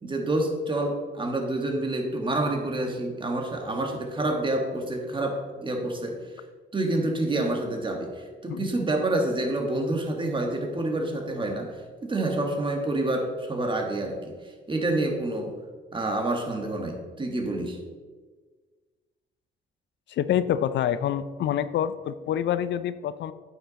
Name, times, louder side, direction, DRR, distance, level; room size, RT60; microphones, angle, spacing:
voice 1, 0.0-6.2 6.7-14.3 14.7-15.5 15.9-17.8, right 2 dB, 25° right, 2 dB, 1.7 m, -28 dB
voice 2, 20.1-23.3, left 10 dB, 65° left, 14 dB, 0.4 m, -26 dB
8.8 x 5.9 x 4.1 m, 1.4 s
cardioid pair, 90°, 20 cm